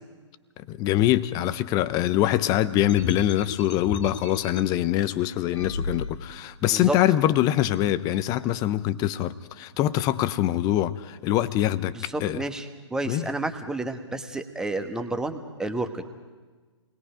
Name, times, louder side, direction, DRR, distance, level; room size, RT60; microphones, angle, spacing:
voice 1, 0.6-12.4 13.0-13.3, left 13 dB, 25° left, 0.8 m, -24 dB
sound 1, 2.9-4.6 5.5-6.4, left 3 dB, 70° left, 2.6 m, -34 dB
voice 2, 11.9-12.6 12.9-16.0, right 2 dB, 5° right, 1.3 m, -30 dB
29.0 x 20.5 x 5.1 m
figure-of-eight pair, 125°, 16 cm